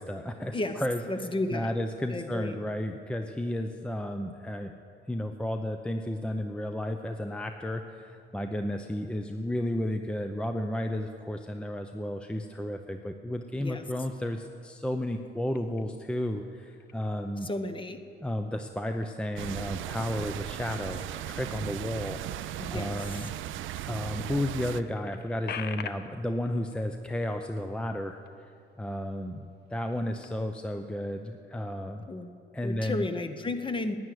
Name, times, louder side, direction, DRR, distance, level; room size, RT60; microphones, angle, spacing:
voice 1, 0.0-1.0 1.5-4.7 5.1-17.5 18.2-23.3 23.8-28.2 28.8-32.1 32.5-33.1, left 1 dB, 5° left, 5 dB, 0.7 m, -33 dB
voice 2, 1.1-1.7 2.1-2.6 13.6-13.8 17.4-18.0 22.6-23.2 32.1-32.3 32.6-33.9, left 2 dB, 25° left, 8 dB, 1.0 m, -33 dB
sound 1, 15.5-16.2 16.6-17.3 17.7-18.5 18.7-23.9 24.3-24.4 24.6-28.6 28.9-29.2 29.6-30.6, left 8 dB, 55° left, 0.7 m, -47 dB
sound 2, 19.4-24.8, right 13 dB, 80° right, 0.5 m, -37 dB
11.0 x 9.5 x 9.2 m, 2.4 s
cardioid pair, 90°, 20 cm